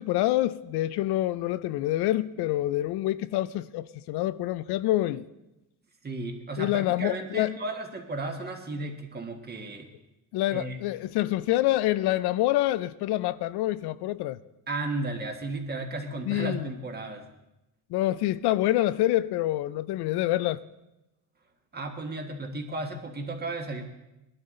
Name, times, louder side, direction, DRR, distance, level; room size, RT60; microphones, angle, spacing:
voice 1, 0.0-5.3 6.6-7.6 10.3-14.4 16.3-16.7 17.9-20.6, left 15 dB, 75° left, 0.6 m, -26 dB
voice 2, 6.0-9.9 10.5-10.8 14.7-17.3 21.7-23.8, right 2 dB, 25° right, 1.6 m, -34 dB
20.0 x 12.0 x 3.8 m
cardioid pair, 135°, 39 cm